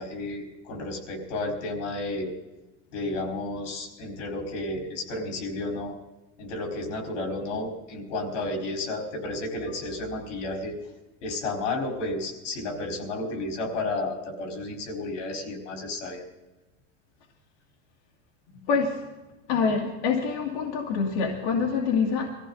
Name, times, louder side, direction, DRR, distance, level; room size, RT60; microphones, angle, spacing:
voice 1, 0.0-2.3 2.9-6.0 6.4-10.8 11.2-16.2, left 2 dB, 85° left, 3 dB, 4.6 m, -32 dB
voice 2, 18.7-19.0 19.5-22.3, left 5 dB, 60° left, -1 dB, 2.5 m, -25 dB
22.5 x 15.0 x 4.0 m, 1.1 s
supercardioid pair, 165°, 36 cm